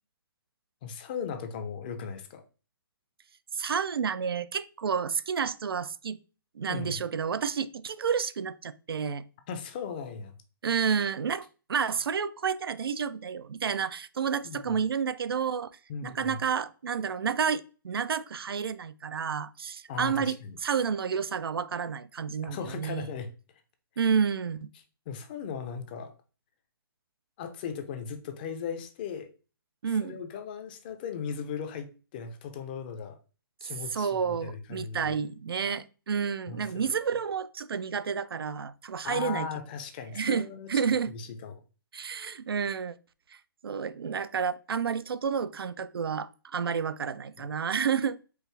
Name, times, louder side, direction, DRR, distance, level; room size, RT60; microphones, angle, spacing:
voice 1, 0.8-2.4 6.7-6.9 9.5-10.4 14.4-14.8 15.9-16.4 19.9-20.6 22.4-23.3 25.1-26.1 27.4-29.3 30.0-33.2 33.6-35.2 36.5-36.8 39.0-40.7 41.1-41.6 47.4-47.5, left 6 dB, 25° left, 0.5 m, -37 dB
voice 2, 3.5-6.2 6.6-9.2 10.6-15.7 16.0-23.1 24.0-24.7 29.8-30.2 33.9-39.5 40.1-41.1 41.9-42.9 43.6-48.2, right 6 dB, 85° right, 0.4 m, -30 dB
4.6 x 2.4 x 3.2 m
hypercardioid pair, 160°, 12 cm